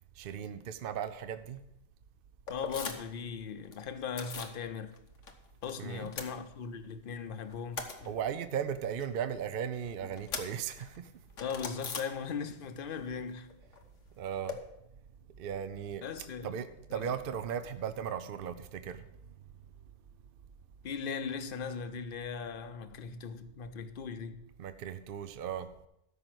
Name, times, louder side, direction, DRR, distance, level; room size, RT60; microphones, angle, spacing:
voice 1, 0.2-1.6 5.8-6.1 8.1-11.1 14.2-14.6 15.4-16.0 16.4-19.0 24.6-25.7, right 8 dB, 55° right, 0.7 m, -37 dB
sound 1, 2.5-3.2 3.5-4.6 4.9-5.7 6.0-7.0 7.3-12.7 12.9-14.6, left 5 dB, 90° left, 1.5 m, -43 dB
voice 2, 2.5-4.9 5.6-7.9 11.4-13.5 16.0-16.6 16.9-17.1 20.8-24.4, left 6 dB, 50° left, 0.8 m, -39 dB
13.5 x 5.3 x 6.1 m
omnidirectional pair, 1.3 m